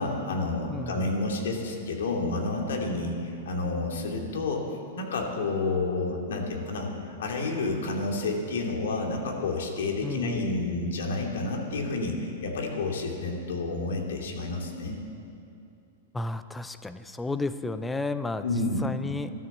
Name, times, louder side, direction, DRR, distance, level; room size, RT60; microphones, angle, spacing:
voice 1, 0.0-4.6 4.9-15.0 18.4-18.8, left 3 dB, 75° left, 1 dB, 2.7 m, -30 dB
voice 2, 0.7-1.1 10.0-10.5 16.1-18.4 18.8-19.3, left 3 dB, 5° left, 11 dB, 0.4 m, -32 dB
13.5 x 13.0 x 7.3 m, 2.6 s
supercardioid pair, 180°, 0 cm